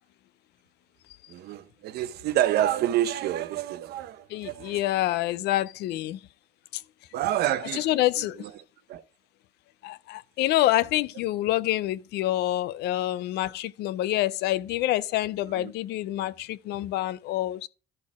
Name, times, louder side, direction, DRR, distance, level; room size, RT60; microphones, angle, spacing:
voice 1, 1.3-4.8 7.1-7.9 8.4-8.5 8.9-9.0 15.5-15.7, right 12 dB, 70° right, 0.7 m, -28 dB
voice 2, 4.3-6.2 6.7-6.8 7.7-8.5 9.8-17.7, left 15 dB, 75° left, 0.4 m, -27 dB
12.5 x 4.2 x 3.5 m
cardioid pair, 110°, 17 cm